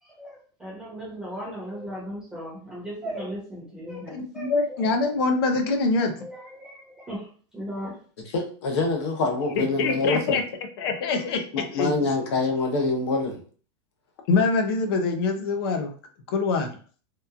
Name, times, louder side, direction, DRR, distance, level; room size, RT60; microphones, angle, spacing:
voice 1, 0.0-4.8 6.2-7.3 7.5-8.0, equal, 5° right, 0.8 m, -37 dB
voice 2, 4.1-6.1 9.6-10.4 10.8-12.1 14.3-15.9 16.3-16.7, left 3 dB, 60° left, 0.5 m, -24 dB
voice 3, 8.3-10.4 11.5-13.4, left 3 dB, 80° left, 0.8 m, -25 dB
2.9 x 2.2 x 2.3 m
supercardioid pair, 165°, 14 cm